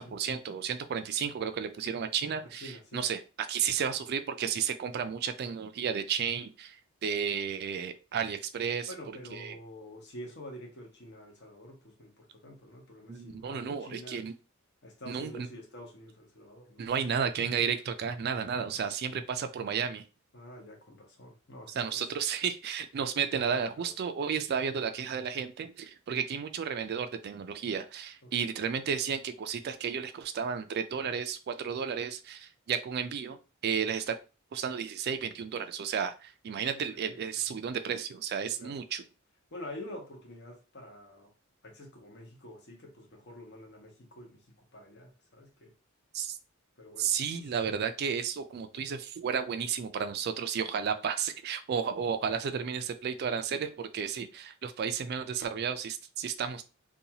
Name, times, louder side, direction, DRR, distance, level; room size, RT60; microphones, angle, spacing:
voice 1, 0.0-8.9 9.3-9.6 13.1-14.3 15.1-15.5 16.8-20.0 21.7-33.4 33.6-34.1 34.5-39.0 46.1-46.4 47.0-56.6, right 7 dB, 50° right, 9 dB, 0.3 m, -33 dB
voice 2, 2.6-3.0 8.9-14.3 14.8-16.9 18.6-18.8 20.3-21.7 23.8-23.9 28.2-28.3 36.7-37.2 38.6-38.8 39.5-41.3 41.6-44.4 44.7-45.7 46.8-47.4, left 1 dB, 55° left, 0 dB, 0.9 m, -47 dB
2.6 x 2.3 x 2.8 m, 0.31 s
head